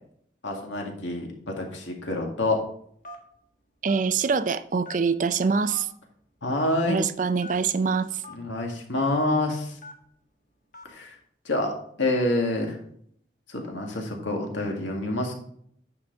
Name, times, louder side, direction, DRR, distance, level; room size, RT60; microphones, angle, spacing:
voice 1, 0.4-1.3 1.6-2.6 6.4-7.0 8.3-9.8 10.9-11.1 11.5-11.7 12.0-12.8 13.5-15.3, left 2 dB, 80° left, 2.0 m, -27 dB
Telephone, 3.0-3.4 3.9-4.1 4.8-5.2 5.7-5.8 6.6-6.7 7.4-7.5 8.2-8.4 9.0-9.1 9.8-10.0 10.7-10.9, left 2 dB, 40° left, 1.4 m, -42 dB
voice 2, 3.8-5.9 6.9-8.2, right 5 dB, 40° right, 0.4 m, -24 dB
9.6 x 5.8 x 3.9 m
head